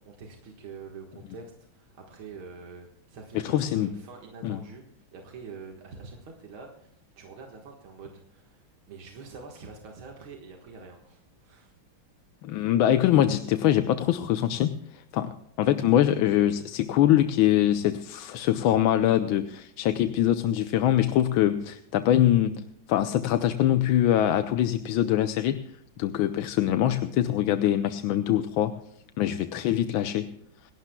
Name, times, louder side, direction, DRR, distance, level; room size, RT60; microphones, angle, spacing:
voice 1, 0.1-6.9 7.2-11.7, right 4 dB, 85° right, 1 dB, 2.4 m, -45 dB
voice 2, 3.3-3.9 4.4-4.6 12.4-15.3 15.6-22.6 22.9-25.6 26.0-28.7 29.2-30.3, left 12 dB, 80° left, 10 dB, 1.5 m, -23 dB
27.5 x 11.5 x 2.3 m, 0.76 s
omnidirectional pair, 2.2 m